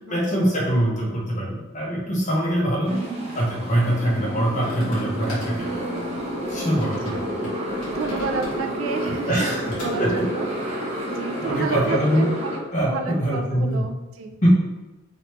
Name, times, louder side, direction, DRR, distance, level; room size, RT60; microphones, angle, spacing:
voice 1, 0.1-3.0 3.3-5.8 6.5-7.2 9.3-9.6 10.0-10.1 11.4-12.3 12.7-13.8 14.4-14.5, equal, 35° left, -4 dB, 0.9 m, -23 dB
Motorcycle, 2.9-12.6, equal, 30° right, 0.7 m, -30 dB
voice 2, 2.9-3.3 6.8-7.2 7.5-12.6 12.9-14.3, right 4 dB, 65° right, 4 dB, 0.4 m, -31 dB
sound 1, 4.6-8.9 9.2-10.1, equal, 85° left, 1.4 m, -37 dB
3.0 x 3.0 x 3.0 m, 1.1 s
head